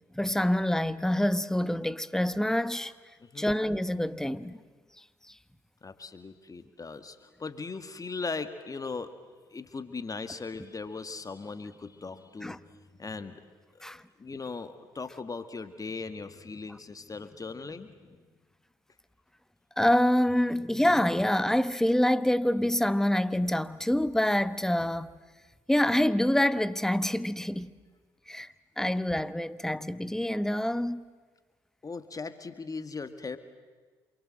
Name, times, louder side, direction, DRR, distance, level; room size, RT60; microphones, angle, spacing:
voice 1, 0.1-2.9 3.4-4.6 5.3-5.4 12.4-12.6 13.8-14.0 19.8-25.1 25.7-27.7 28.3-31.1, left 1 dB, 5° left, 1.1 m, -26 dB
voice 2, 3.2-3.5 5.8-9.1 9.5-13.4 13.7-18.2 31.8-33.4, left 4 dB, 30° left, 1.9 m, -39 dB
27.5 x 23.5 x 7.8 m
hypercardioid pair, 55°, 11 cm